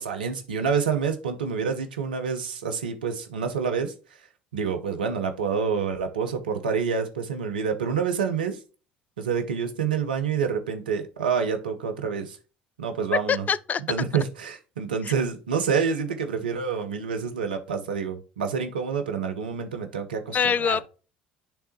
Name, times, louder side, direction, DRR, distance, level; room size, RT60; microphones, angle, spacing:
voice 1, 0.0-3.9 4.5-8.6 9.2-12.4 12.8-13.5 13.9-20.8, right 6 dB, 80° right, 0.9 m, -27 dB
voice 2, 13.3-13.8 15.0-15.1 20.3-20.8, left 7 dB, 35° left, 0.4 m, -24 dB
10.0 x 3.4 x 3.1 m
figure-of-eight pair, 60°, 5 cm